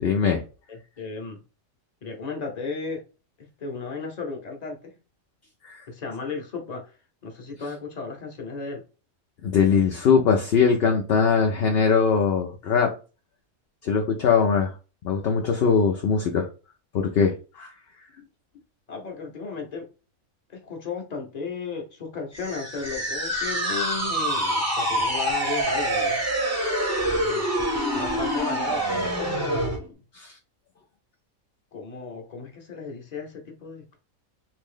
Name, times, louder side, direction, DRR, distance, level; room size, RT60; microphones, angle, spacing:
voice 1, 0.0-0.4 5.6-5.8 9.4-12.9 13.8-14.7 15.0-16.5 16.9-17.7 30.2-30.3, left 6 dB, 60° left, 0.6 m, -21 dB
voice 2, 0.7-1.4 2.0-3.0 3.4-4.9 5.9-6.9 7.2-8.8 18.9-19.9 20.5-26.2 27.1-27.5 27.9-29.9 31.7-34.0, left 4 dB, 35° left, 0.9 m, -35 dB
sound 1, 22.3-29.8, right 1 dB, 15° right, 0.7 m, -26 dB
3.0 x 2.7 x 3.7 m
omnidirectional pair, 1.5 m